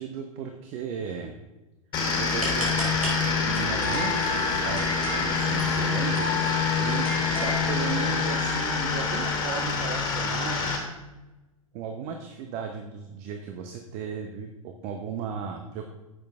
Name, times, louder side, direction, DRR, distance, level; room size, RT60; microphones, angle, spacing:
voice 1, 0.0-1.3 2.0-2.9 3.4-6.3 6.8-7.1 7.4-10.8 11.7-15.9, right 6 dB, 35° right, 5 dB, 0.9 m, -36 dB
sound 1, 1.9-10.8, left 4 dB, 25° left, 2.7 m, -26 dB
sound 2, 2.3-7.6, left 2 dB, 85° right, 3.7 m, -33 dB
10.5 x 7.8 x 3.6 m, 1.1 s
figure-of-eight pair, 100°, 18 cm